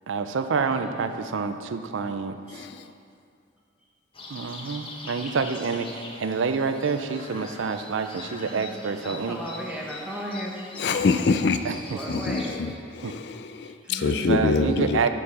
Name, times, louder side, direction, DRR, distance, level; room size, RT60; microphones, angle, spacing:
voice 1, 0.1-2.4 4.3-9.4 11.6-12.0 13.0-13.1 14.0-15.1, right 5 dB, 80° right, 8 dB, 0.5 m, -28 dB
voice 2, 2.5-2.9 10.8-11.6 12.1-15.1, left 4 dB, 55° left, 9 dB, 0.4 m, -25 dB
sound 1, 4.1-12.6, left 3 dB, 25° left, 0.8 m, -42 dB
voice 3, 8.5-10.5 11.9-12.6 13.8-14.8, equal, 5° right, -4 dB, 1.2 m, -35 dB
9.7 x 4.7 x 6.0 m, 2.4 s
head